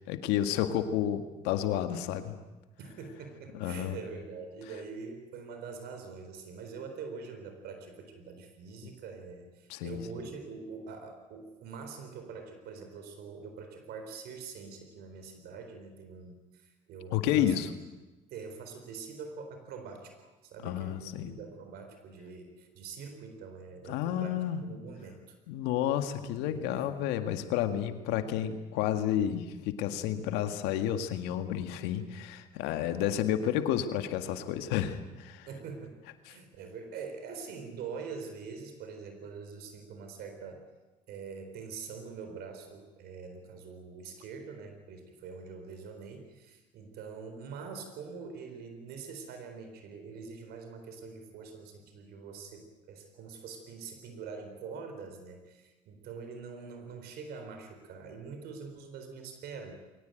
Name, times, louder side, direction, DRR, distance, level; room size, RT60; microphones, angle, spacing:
voice 1, 0.0-2.3 3.5-4.0 9.7-10.0 17.1-17.7 20.6-21.4 23.9-24.6 25.5-35.5 36.3-36.4, left 10 dB, 85° left, 8 dB, 1.9 m, -31 dB
voice 2, 2.8-17.5 18.3-24.3 24.6-25.4 26.2-26.9 35.5-35.9 36.3-40.6 41.1-59.7, right 5 dB, 70° right, 6 dB, 4.1 m, -44 dB
22.5 x 18.5 x 9.1 m, 1.1 s
supercardioid pair, 85°, 17 cm